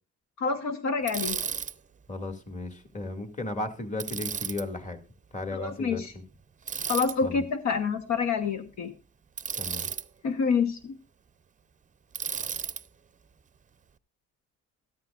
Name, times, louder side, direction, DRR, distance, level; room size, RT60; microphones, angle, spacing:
voice 1, 0.4-1.4 5.5-6.1 6.9-8.9 10.2-11.0, left 5 dB, 65° left, 1.1 m, -27 dB
Bicycle, 1.1-1.7 4.0-4.6 6.7-7.1 9.4-10.0 12.1-12.8, right 6 dB, 25° right, 0.6 m, -33 dB
voice 2, 2.1-5.0 5.3-6.0 7.2-7.4 9.6-9.9, left 2 dB, 25° left, 2.2 m, -35 dB
13.0 x 13.0 x 2.4 m
cardioid pair, 90°, 30 cm